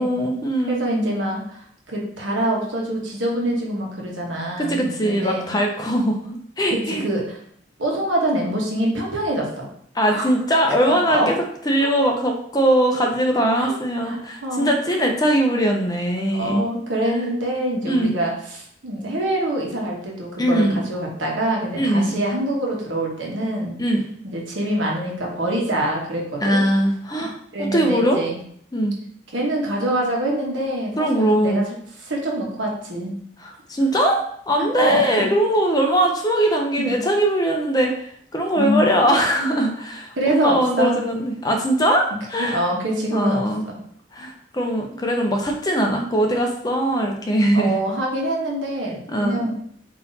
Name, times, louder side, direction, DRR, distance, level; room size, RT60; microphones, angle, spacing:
voice 1, 0.0-0.8 4.6-7.0 9.9-11.3 11.7-16.6 17.9-18.1 20.4-20.8 21.8-22.1 23.8-24.0 26.4-27.3 27.6-28.2 28.7-28.9 31.0-31.6 33.4-42.6 43.1-43.6 44.1-47.7 49.1-49.5, right 1 dB, 20° left, 2 dB, 0.5 m, -21 dB
voice 2, 0.7-5.5 6.7-7.4 7.8-9.7 10.1-10.2 10.8-11.3 11.8-11.9 13.5-13.7 14.0-14.2 14.4-15.1 16.3-23.8 24.2-26.6 27.5-28.4 29.3-31.6 32.0-33.2 34.6-35.3 36.8-37.0 38.6-38.8 40.2-41.0 42.4-43.8 47.5-49.6, right 1 dB, 75° right, -1 dB, 1.1 m, -25 dB
3.9 x 2.8 x 4.0 m, 0.65 s
head